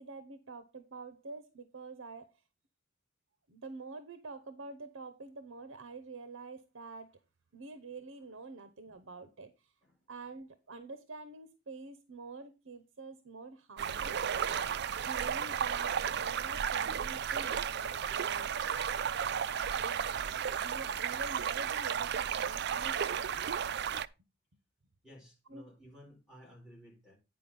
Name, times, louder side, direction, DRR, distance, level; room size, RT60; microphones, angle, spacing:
voice 1, 0.0-2.4 3.5-7.2 7.5-9.7 10.1-14.5 15.0-18.5 19.7-20.1 20.6-23.2 25.5-25.7, right 3 dB, 70° right, 0.9 m, -47 dB
sound 1, 13.8-24.1, right 8 dB, 55° right, 0.4 m, -33 dB
voice 2, 25.0-27.2, equal, 5° right, 3.8 m, -55 dB
9.7 x 4.8 x 5.3 m
head